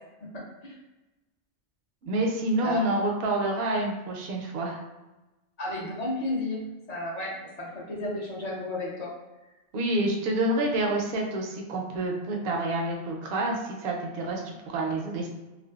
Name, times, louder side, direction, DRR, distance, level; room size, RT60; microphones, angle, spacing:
voice 1, 0.2-0.8 2.6-2.8 5.6-9.1, left 1 dB, 45° left, -4 dB, 0.7 m, -33 dB
voice 2, 2.0-4.8 9.7-15.3, right 1 dB, 65° right, 0 dB, 0.7 m, -28 dB
2.5 x 2.2 x 2.3 m, 1.1 s
omnidirectional pair, 1.1 m